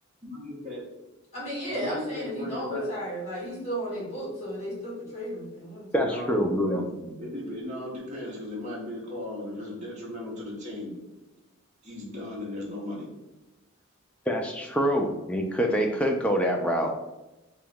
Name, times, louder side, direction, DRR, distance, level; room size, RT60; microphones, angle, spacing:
voice 1, 0.2-0.9 1.7-2.9 6.0-6.8 7.2-11.0 11.8-13.1, left 1 dB, 30° right, -5 dB, 1.0 m, -36 dB
voice 2, 1.3-5.9, equal, 30° left, -5 dB, 1.4 m, -34 dB
voice 3, 5.9-7.2 14.3-16.9, equal, 5° left, 2 dB, 0.3 m, -26 dB
2.9 x 2.8 x 3.5 m, 1.0 s
head